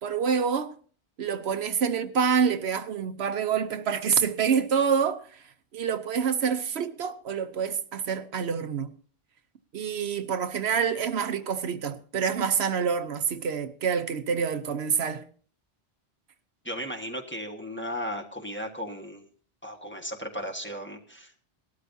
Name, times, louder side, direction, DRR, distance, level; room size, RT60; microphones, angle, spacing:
voice 1, 0.0-0.7 1.2-5.4 5.7-8.9 9.7-15.2, right 6 dB, 75° right, 1.0 m, -27 dB
voice 2, 16.6-19.3 19.6-21.4, equal, 10° left, 1.5 m, -36 dB
19.5 x 12.5 x 2.7 m
omnidirectional pair, 1.1 m